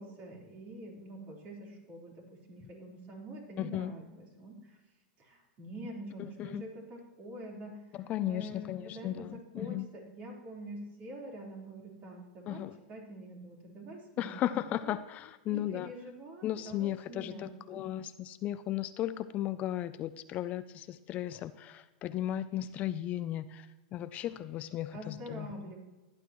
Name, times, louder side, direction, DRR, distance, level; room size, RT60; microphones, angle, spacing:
voice 1, 0.0-4.8 5.2-12.6 12.9-15.0 15.5-17.8 24.9-25.8, right 1 dB, 35° right, -1 dB, 3.8 m, -46 dB
voice 2, 3.6-3.9 6.2-6.6 8.1-9.9 12.5-12.8 14.2-15.9 16.4-25.5, left 12 dB, 30° left, 13 dB, 0.4 m, -35 dB
16.0 x 11.5 x 3.1 m, 1.1 s
supercardioid pair, 140°, 5 cm